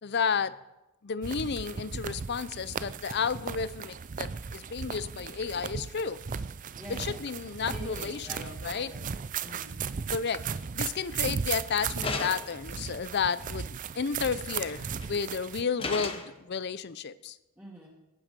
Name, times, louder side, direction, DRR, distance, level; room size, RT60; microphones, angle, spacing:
voice 1, 0.0-0.6 1.0-6.2 6.9-8.9 10.1-17.4, left 6 dB, 50° left, 17 dB, 0.5 m, -32 dB
sound 1, 1.2-15.6, right 6 dB, 35° right, 0.4 m, -36 dB
voice 2, 6.8-7.2 7.7-9.8 17.6-17.9, equal, 10° right, -6 dB, 2.3 m, -45 dB
sound 2, 12.0-12.7 14.7-15.1 15.8-16.4, left 3 dB, 25° left, 1.0 m, -34 dB
18.0 x 9.0 x 5.3 m, 0.98 s
head